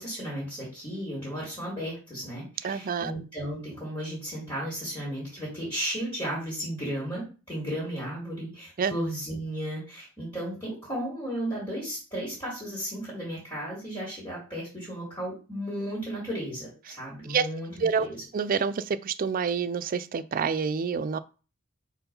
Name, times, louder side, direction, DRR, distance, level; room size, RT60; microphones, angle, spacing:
voice 1, 0.0-18.2, equal, 20° left, 3.0 m, -34 dB
voice 2, 2.6-3.1 8.8-8.9 17.3-17.5 17.8-18.1 18.3-21.2, right 6 dB, 40° right, 0.3 m, -27 dB
4.6 x 3.8 x 5.3 m
head